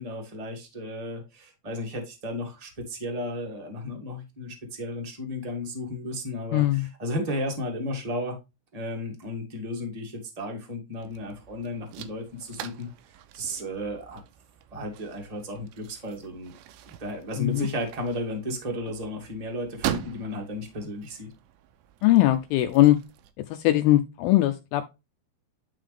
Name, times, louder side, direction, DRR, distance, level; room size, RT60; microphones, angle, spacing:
voice 1, 0.0-8.4 8.7-12.9 13.3-14.2 14.7-16.5 17.0-21.3, left 1 dB, 35° right, 0.6 m, -34 dB
voice 2, 6.5-6.9 17.4-17.7 22.0-23.0 23.5-24.9, left 15 dB, 80° left, 2.2 m, -20 dB
sound 1, 11.0-23.3, right 11 dB, 80° right, 2.4 m, -41 dB
11.0 x 3.8 x 3.3 m
omnidirectional pair, 4.6 m